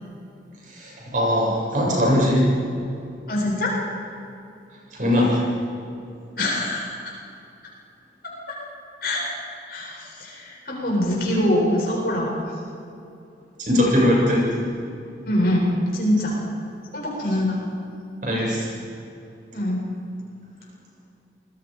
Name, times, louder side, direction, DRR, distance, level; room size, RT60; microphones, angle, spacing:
voice 1, 0.7-2.5 4.9-5.4 13.6-14.5 18.2-18.7, left 1 dB, 45° right, -3 dB, 7.5 m, -20 dB
voice 2, 3.3-3.7 6.4-7.1 9.0-9.2 9.7-12.5 15.3-16.4 16.9-17.6 19.5-19.8, left 1 dB, 55° left, -3 dB, 7.8 m, -24 dB
28.0 x 21.5 x 5.2 m, 2.6 s
head